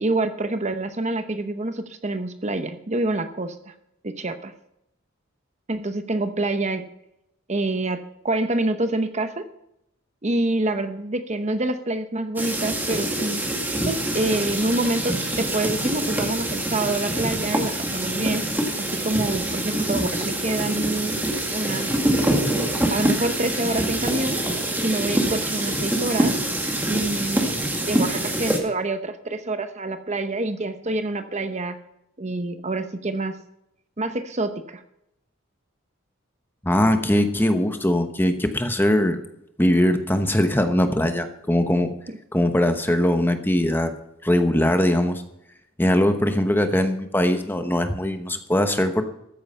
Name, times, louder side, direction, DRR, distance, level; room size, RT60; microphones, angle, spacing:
voice 1, 0.0-3.7 4.0-4.5 5.7-6.9 7.5-9.5 10.2-13.5 13.8-18.5 18.8-21.1 21.5-21.9 22.9-24.4 24.8-26.4 26.9-27.5 27.9-31.8 32.2-33.4 34.0-34.8 42.1-42.2, right 2 dB, 35° right, 9 dB, 0.8 m, -27 dB
sound 1, 12.4-28.6, right 1 dB, 10° right, 1.9 m, -25 dB
voice 2, 36.6-39.2 39.6-41.9 42.3-43.9 44.2-45.2 45.8-49.0, left 1 dB, 10° left, 7 dB, 1.0 m, -21 dB
13.5 x 9.5 x 5.6 m, 0.81 s
head